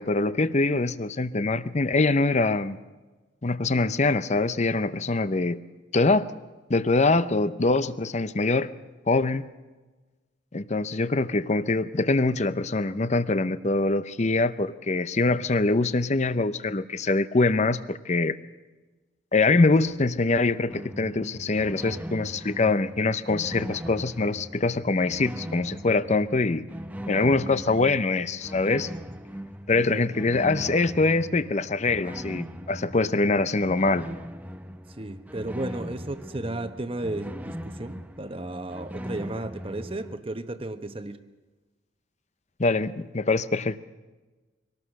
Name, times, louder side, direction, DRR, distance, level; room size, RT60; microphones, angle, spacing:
voice 1, 0.0-2.8 3.4-5.6 5.9-6.3 6.7-8.7 9.1-9.5 10.5-18.4 19.3-26.6 27.1-28.9 29.7-34.1 42.6-43.8, left 3 dB, 35° left, 14 dB, 0.7 m, -24 dB
sound 1, 20.7-40.2, equal, 10° right, 0.7 m, -39 dB
voice 2, 35.0-41.2, right 2 dB, 30° right, 9 dB, 1.1 m, -34 dB
24.5 x 18.5 x 6.6 m, 1.2 s
head